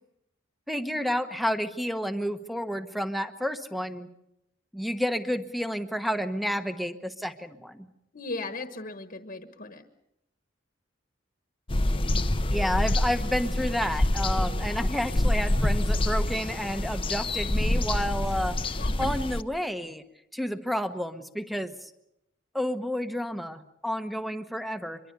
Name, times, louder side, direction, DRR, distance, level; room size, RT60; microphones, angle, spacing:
voice 1, 0.7-4.1 4.7-7.9 12.5-20.0 20.3-21.9 22.5-25.0, equal, ahead, 10 dB, 1.2 m, -30 dB
voice 2, 8.1-9.8 18.8-19.1, left 3 dB, 45° left, 8 dB, 1.4 m, -37 dB
sound 1, 11.7-19.4, left 1 dB, 25° left, 0.8 m, -26 dB
24.5 x 23.0 x 6.9 m, 0.83 s
head